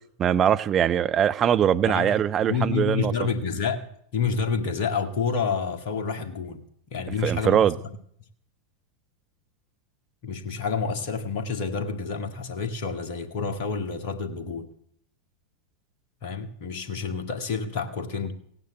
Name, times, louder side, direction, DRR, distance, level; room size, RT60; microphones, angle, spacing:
voice 1, 0.2-3.1 7.2-7.7, right 9 dB, 25° right, 11 dB, 0.7 m, -22 dB
voice 2, 1.8-6.6 6.9-7.7 10.2-14.7 16.2-18.3, left 5 dB, 45° left, 6 dB, 1.7 m, -29 dB
16.5 x 9.3 x 7.9 m, 0.65 s
figure-of-eight pair, 90°, 0 cm